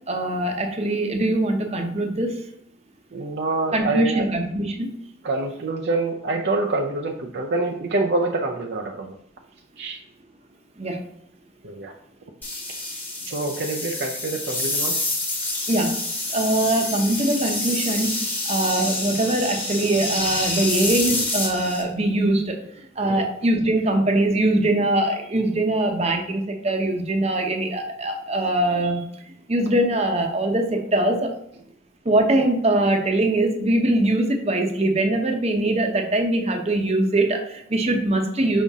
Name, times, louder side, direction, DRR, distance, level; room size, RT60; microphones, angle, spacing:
voice 1, 0.1-2.5 3.7-5.0 10.8-11.0 15.7-16.0 16.3-29.2 29.5-31.3 32.0-38.6, right 1 dB, 30° right, 3 dB, 0.8 m, -22 dB
voice 2, 3.1-4.3 5.2-9.2 9.8-10.0 11.6-11.9 13.3-14.9 23.1-23.2, right 2 dB, 55° right, 1 dB, 0.5 m, -26 dB
sound 1, 12.4-21.8, left 2 dB, 10° left, 1.2 m, -27 dB
5.6 x 5.1 x 3.6 m, 0.72 s
head